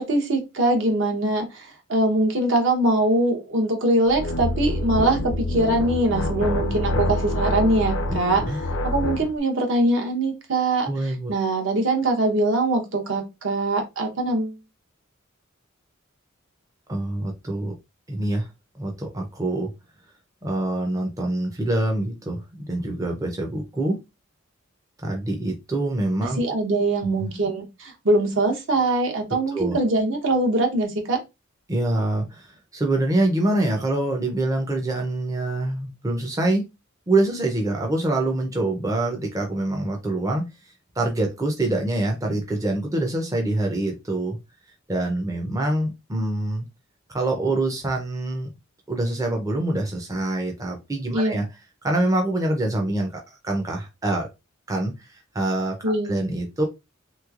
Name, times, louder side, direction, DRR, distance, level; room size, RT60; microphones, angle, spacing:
voice 1, 0.0-8.4 8.8-10.9 11.3-14.6 26.4-31.2 51.1-51.4 55.8-56.1, right 2 dB, 60° right, 0.9 m, -22 dB
sound 1, 4.1-9.3, left 1 dB, 70° left, 0.5 m, -26 dB
voice 2, 10.9-11.3 16.9-17.7 18.1-18.5 18.8-19.7 20.4-24.0 25.0-26.4 27.0-27.3 29.5-29.8 31.7-36.7 37.1-44.4 44.9-46.7 47.1-48.5 48.9-51.5 51.8-54.3 54.7-56.6, right 2 dB, 15° right, 0.5 m, -25 dB
3.1 x 3.0 x 2.4 m
head